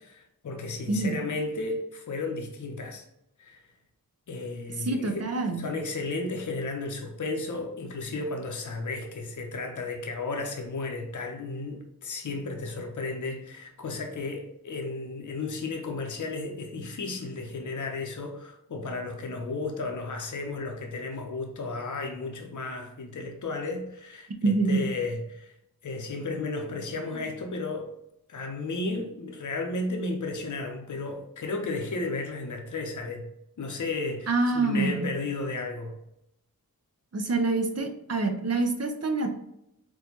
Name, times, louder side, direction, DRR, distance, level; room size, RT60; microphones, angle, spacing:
voice 1, 0.0-3.0 3.4-3.6 4.3-5.3 5.5-25.5 25.8-27.9 28.3-33.3 33.6-36.0, left 3 dB, 55° left, 3 dB, 0.7 m, -33 dB
voice 2, 4.8-5.6 24.4-24.8 34.3-35.1 37.1-39.3, right 3 dB, 45° right, 5 dB, 0.6 m, -26 dB
4.2 x 2.2 x 2.8 m, 0.80 s
wide cardioid pair, 55°, 36 cm